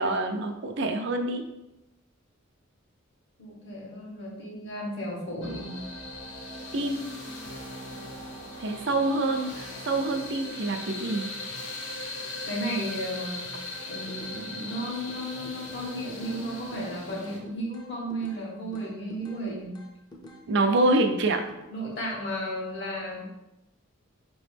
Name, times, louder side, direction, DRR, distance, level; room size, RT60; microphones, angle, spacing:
voice 1, 0.0-1.4 6.7-7.0 8.6-11.3 20.5-21.4, right 2 dB, 60° right, 5 dB, 0.5 m, -26 dB
voice 2, 3.4-5.8 12.4-13.4 13.9-19.8 20.5-20.8 21.7-23.3, equal, 60° left, -3 dB, 1.4 m, -34 dB
sound 1, 5.4-17.4, left 2 dB, 90° left, 1.0 m, -39 dB
sound 2, 13.7-14.4 14.7-16.4 16.7-18.4 18.7-20.4 20.7-21.6, left 1 dB, 20° left, 0.6 m, -48 dB
5.0 x 3.0 x 3.3 m, 0.94 s
head